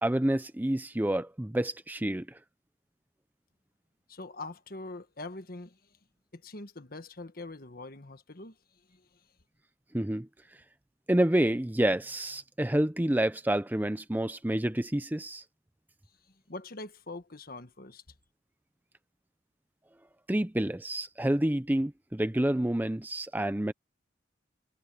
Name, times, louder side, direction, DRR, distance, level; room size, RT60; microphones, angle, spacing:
voice 1, 0.0-2.4 9.9-10.3 11.1-15.4 20.3-23.7, right 1 dB, 10° right, 0.5 m, -28 dB
voice 2, 4.1-6.0 6.3-9.3 16.3-18.0, left 2 dB, 50° left, 1.5 m, -44 dB
head